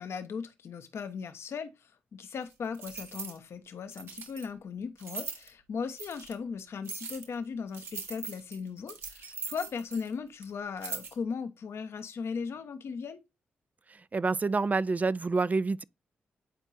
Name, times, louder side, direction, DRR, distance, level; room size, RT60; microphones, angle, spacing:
voice 1, 0.0-13.2, left 5 dB, 65° left, 0.9 m, -38 dB
sound 1, 2.5-3.4 3.9-4.5 5.0-5.5 6.0-6.3 6.8-7.3 7.7-10.1 10.4-10.5 10.8-11.1, right 4 dB, 65° right, 1.4 m, -40 dB
voice 2, 14.1-15.8, right 3 dB, 35° right, 0.4 m, -27 dB
9.2 x 4.5 x 2.6 m
hypercardioid pair, 40°, 5 cm